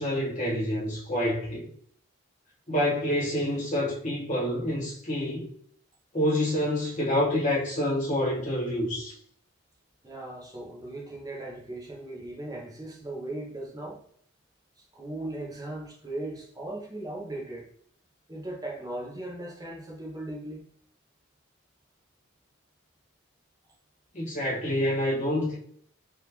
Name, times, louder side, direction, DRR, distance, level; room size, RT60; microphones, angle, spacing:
voice 1, 0.0-1.7 2.7-5.5 6.1-9.1 24.1-25.5, left 1 dB, 35° left, 1.2 m, -27 dB
voice 2, 10.0-14.0 14.9-17.7 18.3-20.7, right 1 dB, 15° right, 0.6 m, -38 dB
3.5 x 2.4 x 2.9 m
head